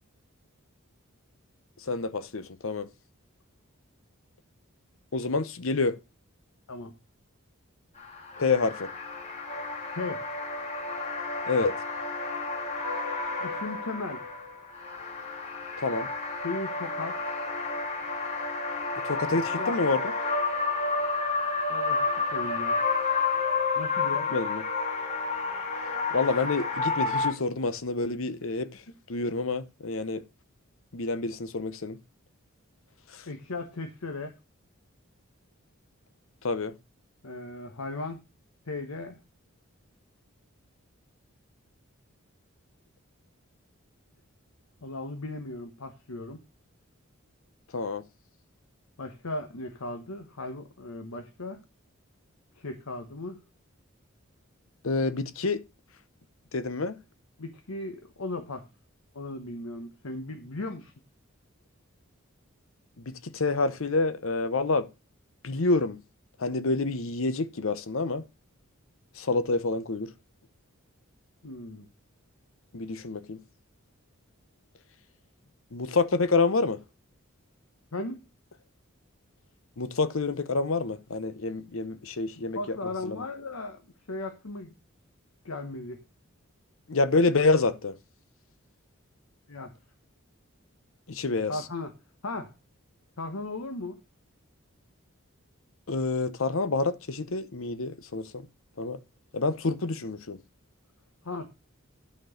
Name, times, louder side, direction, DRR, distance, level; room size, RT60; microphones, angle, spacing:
voice 1, 1.8-2.9 5.1-6.0 8.4-8.9 11.5-11.8 15.8-16.1 19.0-20.1 24.3-24.6 26.1-28.8 29.1-30.2 30.9-32.0 33.1-33.3 36.4-36.7 47.7-48.0 54.8-55.6 56.5-57.0 63.0-64.9 65.4-66.0 66.4-68.2 69.1-70.1 72.7-73.4 75.7-76.8 79.8-82.8 83.0-83.2 86.9-88.0 91.1-91.6 95.9-98.5 98.8-99.0 99.3-100.4, left 3 dB, 70° left, 0.8 m, -28 dB
sound 1, 8.0-27.3, left 4 dB, 30° left, 2.4 m, -30 dB
voice 2, 13.4-14.2 16.4-17.2 19.3-19.8 21.7-22.8 23.7-24.3 33.3-34.3 37.2-38.2 38.7-39.2 44.8-46.4 49.0-51.6 52.5-53.4 57.4-58.7 59.1-60.9 71.4-71.9 77.9-78.2 82.5-83.8 84.1-84.7 85.4-86.0 87.1-87.2 89.5-89.7 91.5-91.9 92.2-92.5 93.2-94.0 101.2-101.5, left 2 dB, 90° left, 1.2 m, -36 dB
11.5 x 4.5 x 6.4 m
head